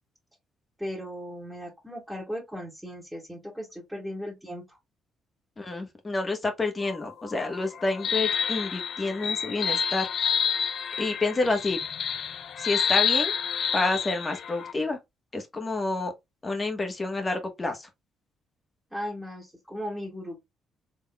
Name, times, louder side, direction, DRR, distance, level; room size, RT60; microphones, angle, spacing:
voice 1, 0.8-4.8 18.9-20.4, equal, 5° right, 1.6 m, -37 dB
voice 2, 5.6-10.1 11.0-11.8 12.6-13.3 13.7-15.0 15.3-16.1 16.4-17.9, left 3 dB, 25° left, 1.3 m, -29 dB
sound 1, 6.8-14.7, left 7 dB, 60° left, 0.5 m, -29 dB
3.9 x 3.5 x 2.2 m
cardioid pair, 90°, 0 cm